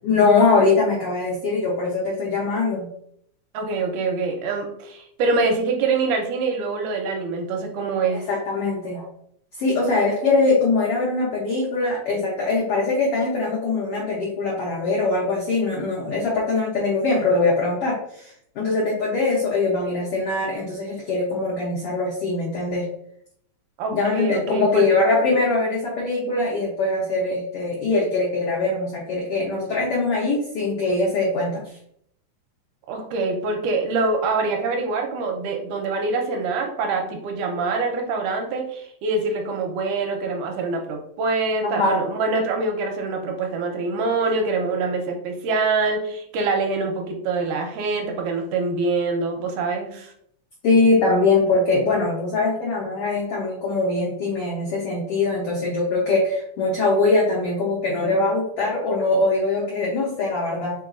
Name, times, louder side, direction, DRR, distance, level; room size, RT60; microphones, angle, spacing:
voice 1, 0.0-2.9 8.1-9.0 9.6-22.9 23.9-31.8 41.6-42.0 50.6-60.7, left 3 dB, 80° left, -4 dB, 1.3 m, -22 dB
voice 2, 3.5-8.2 23.8-24.9 32.9-50.1, right 3 dB, 80° right, 2 dB, 2.1 m, -25 dB
4.8 x 3.9 x 2.4 m, 0.69 s
omnidirectional pair, 3.7 m